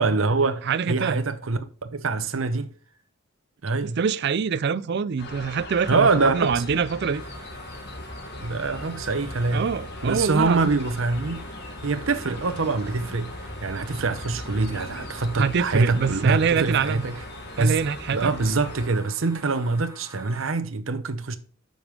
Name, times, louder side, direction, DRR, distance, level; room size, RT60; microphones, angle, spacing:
voice 1, 0.0-2.7 3.6-4.0 5.9-6.6 8.4-9.7 10.0-11.5 11.8-13.3 13.6-17.1 17.6-17.8 18.1-21.4, right 3 dB, 75° right, 0.8 m, -24 dB
voice 2, 0.6-1.3 3.8-7.2 9.5-10.7 15.3-17.1 17.6-18.3, right 6 dB, 55° right, 0.4 m, -25 dB
sound 1, 5.2-18.9, left 1 dB, 55° left, 1.6 m, -38 dB
sound 2, 7.1-20.5, left 1 dB, 15° right, 2.4 m, -47 dB
8.0 x 5.2 x 5.1 m
head